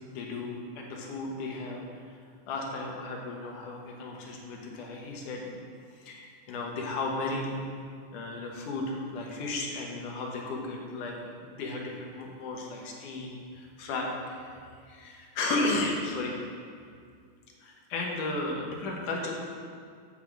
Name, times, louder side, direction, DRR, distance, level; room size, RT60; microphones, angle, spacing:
voice 1, 0.1-2.0 2.5-5.6 5.9-7.6 8.1-14.6 14.9-16.4 17.6-19.3, left 2 dB, 70° left, -1 dB, 2.6 m, -34 dB
8.4 x 5.7 x 7.3 m, 2.2 s
omnidirectional pair, 4.0 m